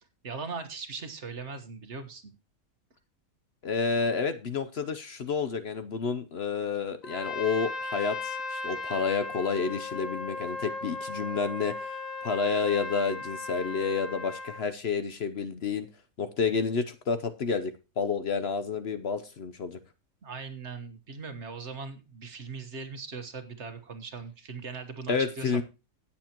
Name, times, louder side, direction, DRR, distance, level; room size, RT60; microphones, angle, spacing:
voice 1, 0.2-2.3 20.2-25.6, right 4 dB, 55° right, 8 dB, 1.6 m, -39 dB
voice 2, 3.6-11.9 12.2-15.9 16.2-19.8 25.1-25.6, left 5 dB, 55° left, 11 dB, 0.9 m, -30 dB
Trumpet, 7.0-14.7, left 3 dB, 30° left, 1.6 m, -37 dB
17.0 x 7.2 x 2.9 m, 0.29 s
omnidirectional pair, 1.4 m